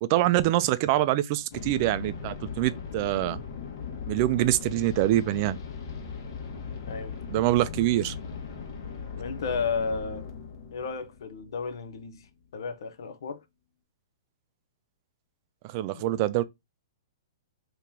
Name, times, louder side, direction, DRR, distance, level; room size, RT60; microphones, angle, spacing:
voice 1, 0.0-3.4 4.1-5.6 7.3-8.1 15.6-16.4, right 15 dB, 40° right, 0.3 m, -25 dB
sound 1, 1.5-12.3, left 6 dB, 55° left, 1.2 m, -39 dB
voice 2, 6.9-7.2 9.2-10.3 10.7-12.3 12.5-13.4 15.9-16.0, left 5 dB, 70° left, 0.7 m, -33 dB
2.9 x 2.9 x 3.6 m
hypercardioid pair, 145°, 2 cm